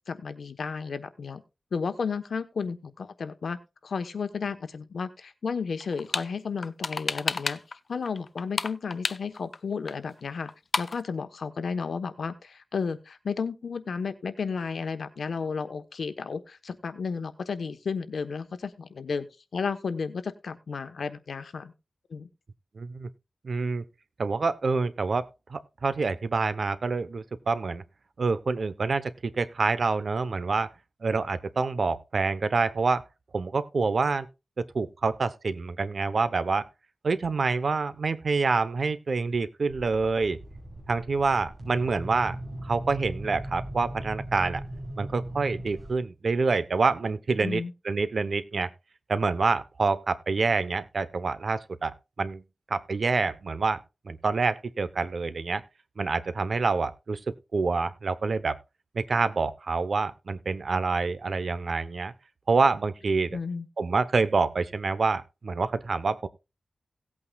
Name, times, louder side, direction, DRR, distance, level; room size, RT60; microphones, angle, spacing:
voice 1, 0.1-1.4 1.7-7.6 7.9-10.5 10.8-19.2 19.5-21.7 22.1-22.3 47.4-47.7 63.3-63.7, left 5 dB, 85° left, 10 dB, 1.1 m, -33 dB
sound 1, 5.8-6.3 6.6-7.8 8.0-9.6 9.9-10.0 10.2-10.3 10.5-11.0, left 4 dB, 55° left, 0.5 m, -30 dB
voice 2, 22.8-23.1 23.4-23.8 24.2-27.8 28.2-30.7 31.0-33.0 33.3-34.3 34.6-36.6 37.0-40.4 40.9-42.4 42.6-44.6 45.0-48.7 49.1-51.9 52.2-52.4 52.7-53.8 54.0-55.6 56.0-58.6 58.9-62.1 62.5-63.4 63.8-66.3, right 4 dB, 65° right, 13 dB, 0.9 m, -27 dB
sound 2, 39.7-46.0, right 1 dB, 30° right, 5.8 m, -39 dB
17.5 x 8.6 x 2.4 m, 0.27 s
wide cardioid pair, 85°, 0 cm